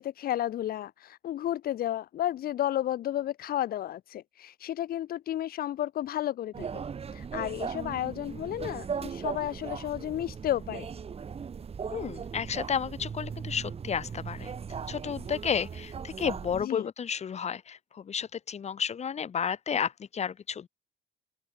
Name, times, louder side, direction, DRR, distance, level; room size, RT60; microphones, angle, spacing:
voice 1, 0.0-6.7 7.1-10.9 16.5-16.9, left 12 dB, 60° left, 2.3 m, -32 dB
sound 1, 6.5-16.6, right 6 dB, 35° right, 6.5 m, -38 dB
voice 2, 11.9-14.5 14.9-20.7, left 7 dB, 40° left, 4.2 m, -32 dB
open air
cardioid pair, 110°, 17 cm